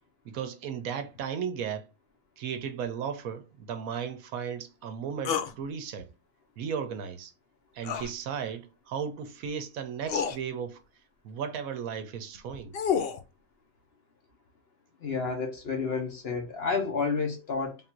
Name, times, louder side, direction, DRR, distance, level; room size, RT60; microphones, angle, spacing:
voice 1, 0.2-1.9 2.4-6.1 6.6-7.3 7.7-10.8 11.2-12.7, right 7 dB, 75° right, 1.0 m, -35 dB
sound 1, 5.3-5.5 7.8-8.1 9.4-9.5 10.1-10.4 12.4-13.2, left 7 dB, 65° left, 0.6 m, -29 dB
voice 2, 15.0-17.8, left 4 dB, 50° left, 1.0 m, -30 dB
3.6 x 2.5 x 4.3 m
omnidirectional pair, 1.5 m